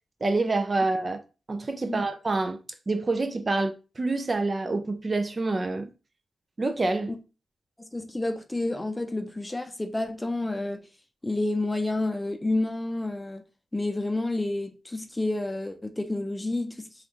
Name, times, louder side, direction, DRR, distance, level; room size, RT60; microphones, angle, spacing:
voice 1, 0.2-1.2 1.5-2.6 2.9-5.9 6.6-7.1, right 3 dB, 40° right, 0.5 m, -27 dB
voice 2, 7.8-10.8 11.2-13.4 13.7-16.9, left 2 dB, 20° left, 0.6 m, -29 dB
3.2 x 2.4 x 3.0 m
cardioid pair, 50°, 0 cm